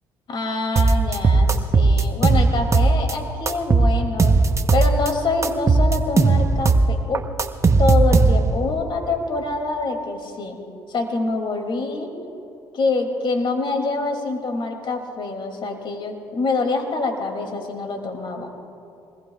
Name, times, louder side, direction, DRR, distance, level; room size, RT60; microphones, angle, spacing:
voice 1, 0.3-4.4 4.7-7.2 7.8-10.6 10.9-12.1 12.7-18.5, left 3 dB, 50° left, 3 dB, 2.8 m, -25 dB
sound 1, 0.8-3.1 3.5-5.1 5.4-8.6, right 3 dB, 30° right, 1.1 m, -17 dB
25.5 x 20.5 x 2.4 m, 2.6 s
supercardioid pair, 60°, 10 cm